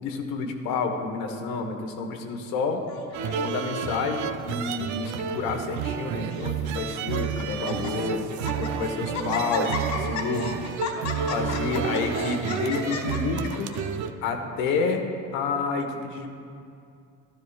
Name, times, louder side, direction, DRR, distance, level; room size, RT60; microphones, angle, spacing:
voice 1, 0.0-2.8 3.4-8.2 8.6-10.5 11.3-13.7 14.2-15.0 15.3-16.3, left 4 dB, 90° left, 4 dB, 1.1 m, -29 dB
Laughter, 2.9-3.7 4.4-4.8 5.0-5.1 5.9-6.5 7.1-7.2 7.5-7.9 8.3-8.7 9.1-13.9, left 5 dB, 65° left, 1.6 m, -34 dB
sound 1, 3.1-14.1, right 7 dB, 65° right, 0.6 m, -31 dB
13.0 x 12.5 x 2.4 m, 2.5 s
cardioid pair, 120°, 32 cm